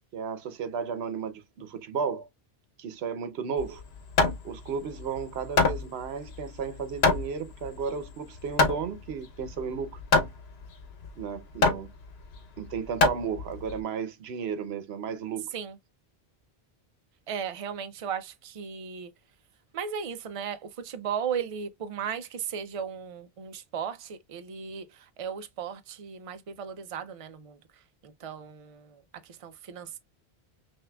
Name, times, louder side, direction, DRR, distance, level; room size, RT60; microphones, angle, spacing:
voice 1, 0.1-2.3 2.8-3.8 4.4-10.0 11.2-11.9 12.6-15.5, right 6 dB, 85° right, 1.0 m, -34 dB
Hammer, 3.6-13.8, left 3 dB, 90° left, 1.0 m, -27 dB
voice 2, 17.3-19.1 19.7-27.6 28.0-30.0, right 7 dB, 40° right, 0.5 m, -36 dB
5.7 x 2.7 x 2.2 m
omnidirectional pair, 1.0 m